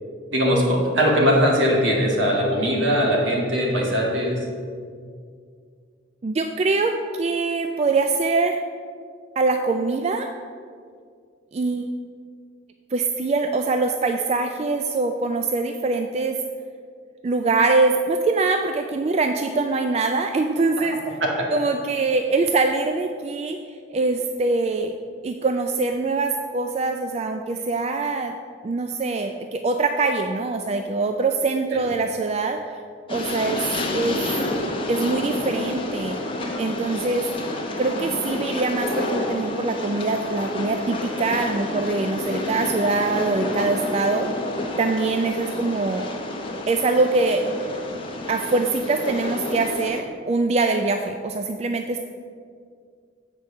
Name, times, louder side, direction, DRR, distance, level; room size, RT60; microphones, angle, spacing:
voice 1, 0.3-4.5 31.7-31.8, equal, 75° right, -1 dB, 1.8 m, -20 dB
voice 2, 6.2-8.6 9.4-10.3 11.5-11.9 12.9-16.4 17.2-21.2 21.5-23.6 23.9-24.9 25.2-28.4 28.6-32.8 33.1-33.6 33.9-34.2 34.9-36.2 36.6-37.3 37.8-44.3 44.8-46.1 46.7-47.4 48.3-52.0, right 3 dB, 35° right, 5 dB, 0.3 m, -23 dB
Train, 33.1-50.0, left 2 dB, 25° left, 0.8 m, -29 dB
7.8 x 4.6 x 6.6 m, 2.1 s
head